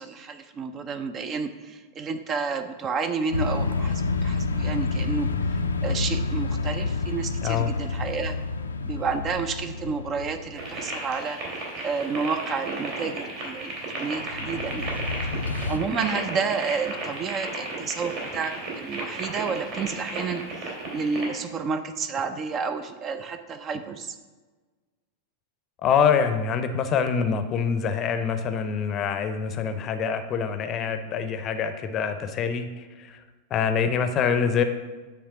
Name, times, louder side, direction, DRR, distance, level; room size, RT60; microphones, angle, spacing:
voice 1, 0.0-8.4 8.8-11.4 11.8-15.0 15.7-20.4 20.9-24.1, right 5 dB, 30° right, 9 dB, 0.5 m, -30 dB
sound 1, 3.3-10.8 14.2-15.8, left 3 dB, 75° left, 0.4 m, -28 dB
sound 2, 10.5-21.3, right 2 dB, 45° right, 2.6 m, -34 dB
voice 2, 25.8-32.7 33.0-33.2 33.5-34.6, left 6 dB, 30° left, 8 dB, 0.6 m, -25 dB
9.5 x 3.4 x 5.8 m, 1.3 s
figure-of-eight pair, 90°, 0 cm